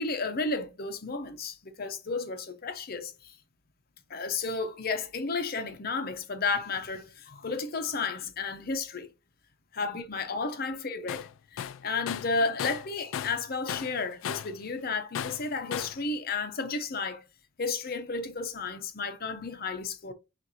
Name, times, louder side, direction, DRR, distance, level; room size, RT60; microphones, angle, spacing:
voice 1, 0.0-3.4 4.1-9.1 9.7-17.2 17.6-20.1, left 4 dB, 50° left, 0.7 m, -32 dB
Tools, 11.1-11.3 11.6-13.4 13.7-14.6 15.2-16.0, left 9 dB, 80° left, 0.3 m, -35 dB
5.6 x 2.5 x 2.8 m
head